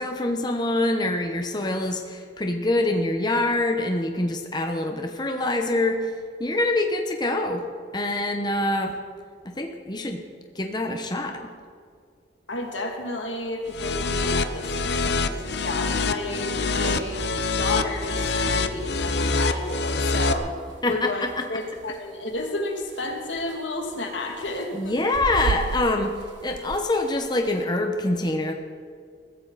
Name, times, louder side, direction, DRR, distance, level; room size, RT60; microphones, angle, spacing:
voice 1, 0.0-6.1 6.4-7.6 7.9-9.0 9.4-10.2 10.5-11.5 20.8-21.5 24.7-26.1 26.4-28.5, left 2 dB, 25° left, 4 dB, 1.0 m, -25 dB
voice 2, 12.5-17.3 17.6-20.5 20.9-24.9, left 2 dB, 85° left, 2 dB, 2.6 m, -31 dB
sound 1, 12.6-12.7 13.0-13.1 13.4-13.5 14.1-14.3 14.8-14.9 15.4-15.5 15.8-15.9 16.4-16.5 16.6-27.6, right 5 dB, 75° right, 0.4 m, -37 dB
sound 2, 13.7-20.3, left 3 dB, 65° left, 0.8 m, -25 dB
22.0 x 15.0 x 4.2 m, 2.1 s
head